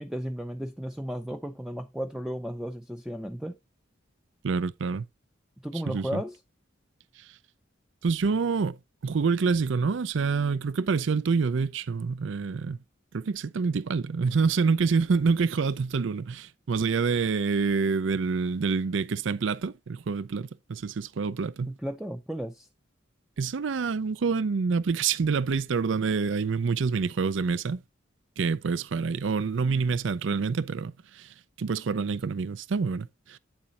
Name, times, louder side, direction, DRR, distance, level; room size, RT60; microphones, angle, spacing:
voice 1, 0.0-3.6 5.6-6.4 21.7-22.7, equal, 5° right, 0.5 m, -34 dB
voice 2, 4.4-5.0 5.9-6.2 8.0-12.8 13.1-21.7 23.4-27.8 28.4-33.4, right 5 dB, 70° right, 0.5 m, -27 dB
8.8 x 7.2 x 2.9 m
head